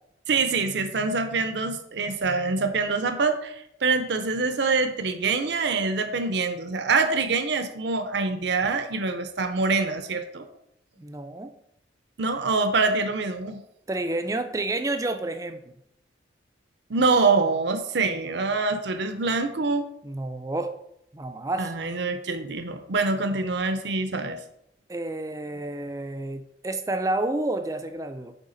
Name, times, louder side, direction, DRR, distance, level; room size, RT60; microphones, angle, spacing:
voice 1, 0.3-10.5 12.2-13.6 16.9-19.9 21.6-24.4, right 4 dB, 60° right, 8 dB, 0.6 m, -25 dB
voice 2, 11.0-11.5 13.9-15.8 20.0-20.7 21.1-21.7 24.9-28.3, right 2 dB, 15° right, 8 dB, 0.4 m, -30 dB
8.2 x 3.4 x 3.9 m, 0.77 s
head